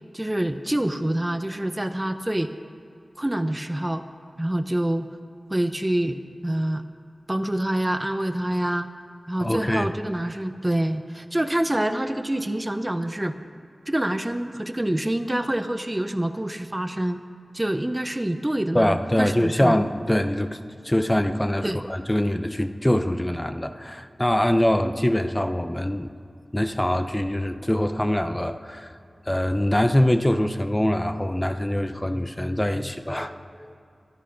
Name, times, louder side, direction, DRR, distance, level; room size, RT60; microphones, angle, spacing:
voice 1, 0.1-2.5 3.2-4.0 4.4-5.1 5.5-6.2 6.4-6.8 7.3-8.9 9.3-13.3 13.9-17.2 17.5-19.8 21.6-21.8, right 1 dB, 20° right, 9 dB, 0.7 m, -26 dB
voice 2, 9.4-9.9 18.7-20.6 20.8-26.1 26.5-29.0 29.3-33.8, left 1 dB, 15° left, 8 dB, 0.7 m, -23 dB
24.0 x 8.3 x 5.2 m, 2.5 s
wide cardioid pair, 50°, 0 cm